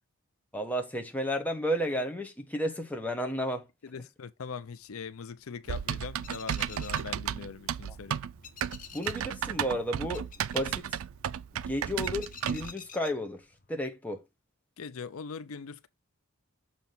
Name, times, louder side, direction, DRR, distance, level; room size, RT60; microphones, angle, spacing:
voice 1, 0.5-3.7 8.9-11.0 11.5-14.2, equal, 5° left, 0.9 m, -32 dB
voice 2, 3.8-8.2 14.8-15.9, left 5 dB, 80° left, 0.5 m, -41 dB
sound 1, 4.6-13.7, left 7 dB, 40° left, 0.8 m, -51 dB
Typing, 5.7-12.7, right 9 dB, 75° right, 0.3 m, -33 dB
6.9 x 2.9 x 5.8 m
head